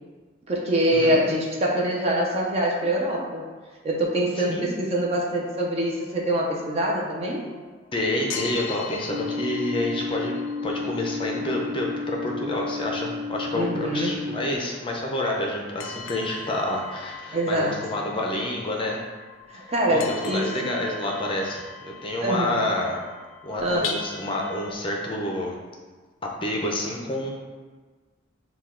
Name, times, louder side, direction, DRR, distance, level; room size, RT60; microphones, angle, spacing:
voice 1, 0.5-3.5 3.8-7.5 13.5-14.2 17.3-17.7 19.5-20.7 22.2-22.6 23.6-24.0, right 1 dB, 30° right, -2 dB, 0.6 m, -24 dB
sound 1, 5.2-7.9 8.3-24.7, left 5 dB, 90° left, 0.5 m, -41 dB
voice 2, 7.9-10.3 10.6-19.0 19.5-23.0 23.4-25.6 26.4-27.3, left 1 dB, 25° left, -1 dB, 0.5 m, -28 dB
sound 2, 9.1-14.6, left 4 dB, 70° right, 0.4 m, -32 dB
6.3 x 2.3 x 3.7 m, 1.4 s
head